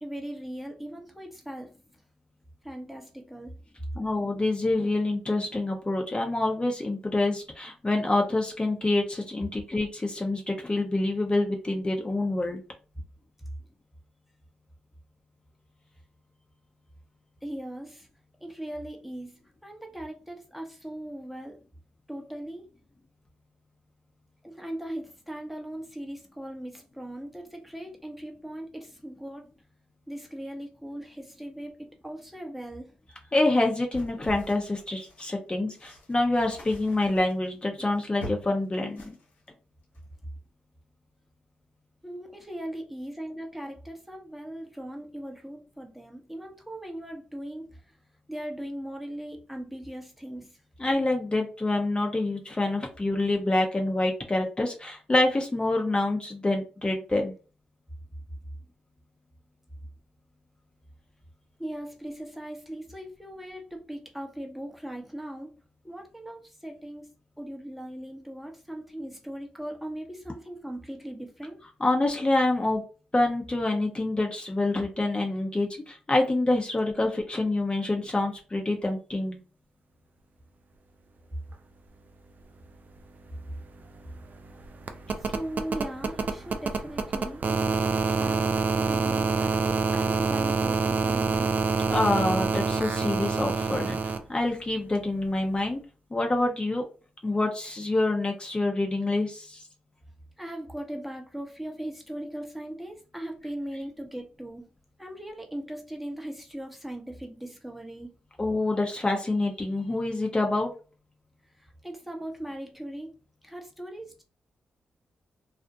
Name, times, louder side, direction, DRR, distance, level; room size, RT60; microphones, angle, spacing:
voice 1, 0.0-1.8 2.6-3.6 13.4-13.5 17.4-18.1 18.4-21.6 22.1-22.7 24.4-29.5 30.1-32.9 42.0-47.9 48.3-50.6 61.6-65.5 65.8-67.1 67.4-71.6 85.2-88.5 88.8-91.5 100.4-104.6 105.0-108.2 111.6-113.1 113.4-114.2, right 1 dB, 5° right, 2 dB, 0.8 m, -39 dB
voice 2, 4.0-12.6 33.3-39.0 50.8-57.3 71.8-72.8 73.1-79.4 91.9-95.8 96.1-96.8 97.2-99.6 108.4-110.7, left 2 dB, 30° left, 1 dB, 0.6 m, -26 dB
sound 1, 33.9-35.3 35.7-38.6 38.9-39.5 39.8-40.0, left 1 dB, 85° left, 1.1 m, -43 dB
sound 2, 83.0-83.1 83.3-94.2 95.6-95.7, right 4 dB, 50° right, 0.4 m, -27 dB
2.4 x 2.1 x 2.7 m, 0.35 s
supercardioid pair, 45°, 4 cm